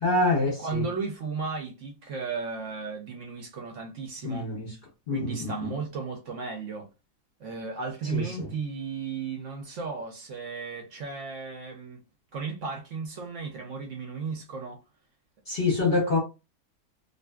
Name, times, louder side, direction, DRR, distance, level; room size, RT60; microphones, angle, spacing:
voice 1, 0.0-0.8 4.2-4.7 5.1-5.7 8.1-8.5 15.5-16.2, left 2 dB, 50° left, 0.7 m, -26 dB
voice 2, 0.6-4.5 5.1-6.9 7.4-12.0 12.3-14.8, right 5 dB, 65° right, 0.8 m, -35 dB
2.5 x 2.4 x 2.2 m
omnidirectional pair, 1.7 m